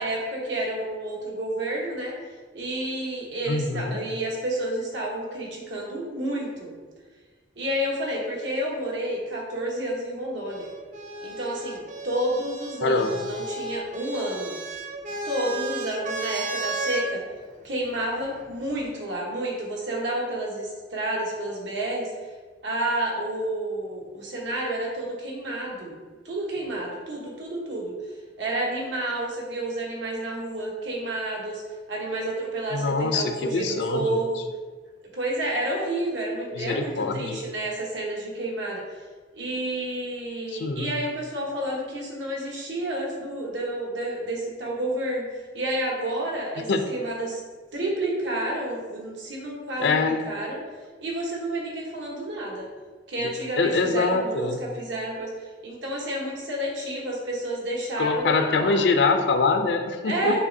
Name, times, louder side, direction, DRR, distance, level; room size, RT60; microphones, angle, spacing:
voice 1, 0.0-2.1 2.5-6.7 7.6-10.7 11.2-14.6 15.2-17.2 17.6-22.1 22.6-26.0 26.2-28.0 28.4-31.6 31.9-34.4 35.1-38.8 39.3-45.3 45.5-47.4 47.7-50.6 51.0-52.7 53.1-55.3 55.6-58.9 60.0-60.5, right 1 dB, 85° right, -3 dB, 1.1 m, -30 dB
voice 2, 3.5-4.0 12.8-13.2 32.7-34.2 36.5-37.4 40.5-40.9 46.7-46.8 49.8-50.2 53.2-53.3 53.6-54.6 58.0-60.4, left 4 dB, 70° left, 6 dB, 0.4 m, -24 dB
sound 1, 10.5-17.1 18.2-18.8, right 2 dB, 45° right, 0.4 m, -34 dB
6.4 x 2.9 x 2.7 m, 1.4 s
head